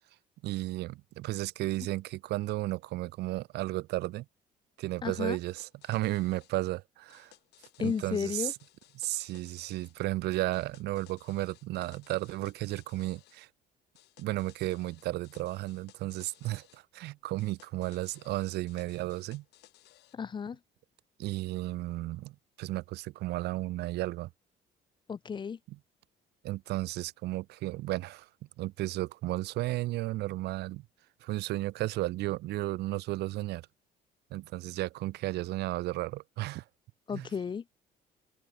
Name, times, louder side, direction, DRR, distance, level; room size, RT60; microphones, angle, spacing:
voice 1, 0.4-4.2 4.8-7.3 7.8-8.5 9.0-13.5 14.2-19.4 21.2-24.3 26.4-28.3 28.6-30.9 31.2-33.7 34.3-36.6 37.1-37.3, right 17 dB, 75° right, 0.9 m, -34 dB
voice 2, 5.0-5.4 7.8-8.5 20.1-20.6 25.1-25.6 37.1-37.6, left 6 dB, 30° left, 0.5 m, -33 dB
sound 1, 5.5-6.5 7.1-10.0 10.5-13.4 13.9-16.8 17.4-20.2, left 17 dB, 85° left, 6.8 m, -61 dB
cardioid pair, 110°, 17 cm